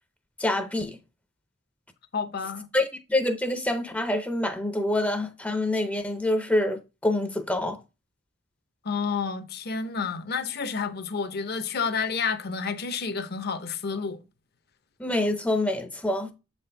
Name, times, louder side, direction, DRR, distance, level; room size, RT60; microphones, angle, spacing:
voice 1, 0.4-1.0 2.7-7.8 15.0-16.3, left 1 dB, 10° left, 0.5 m, -26 dB
voice 2, 2.1-2.7 8.8-14.2, left 5 dB, 55° left, 0.7 m, -30 dB
7.3 x 4.2 x 3.3 m
head